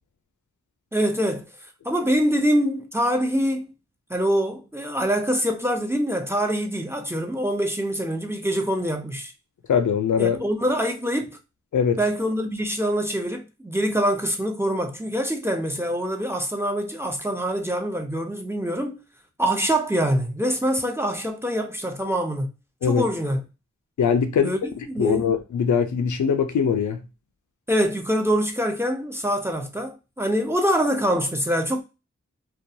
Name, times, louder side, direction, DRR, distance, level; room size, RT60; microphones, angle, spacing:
voice 1, 0.9-1.4 1.8-3.7 4.1-9.3 10.2-11.4 12.0-19.0 19.4-22.5 22.8-23.4 24.4-24.6 24.9-25.2 27.7-31.8, equal, 10° right, 0.4 m, -24 dB
voice 2, 9.7-10.4 11.7-12.0 22.8-23.1 24.0-24.5 25.0-27.0, left 7 dB, 80° left, 0.5 m, -21 dB
2.2 x 2.2 x 2.6 m
wide cardioid pair, 80°, 30 cm